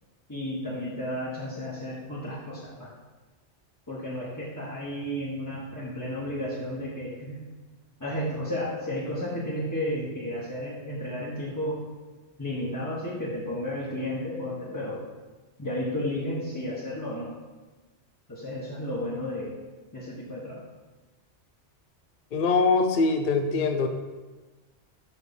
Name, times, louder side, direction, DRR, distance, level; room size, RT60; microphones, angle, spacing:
voice 1, 0.3-2.9 3.9-7.4 8.0-11.8 12.4-15.0 15.6-17.3 18.3-19.5 19.9-20.6, left 1 dB, 15° left, -9 dB, 1.1 m, -32 dB
voice 2, 22.3-23.9, left 4 dB, 55° left, 6 dB, 0.7 m, -23 dB
6.3 x 4.4 x 5.3 m, 1.2 s
omnidirectional pair, 1.2 m